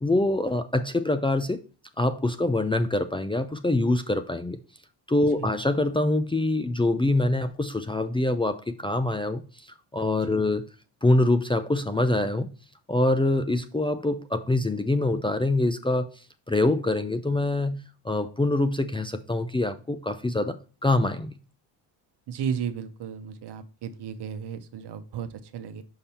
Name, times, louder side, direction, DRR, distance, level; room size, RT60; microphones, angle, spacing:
voice 1, 0.0-1.6 2.0-4.6 5.1-10.6 11.0-12.5 12.9-16.1 16.5-21.4, left 2 dB, 10° left, 0.5 m, -25 dB
voice 2, 5.2-5.5 10.2-10.4 22.3-25.8, right 7 dB, 60° right, 1.0 m, -34 dB
5.7 x 5.3 x 4.3 m
cardioid pair, 85°, 46 cm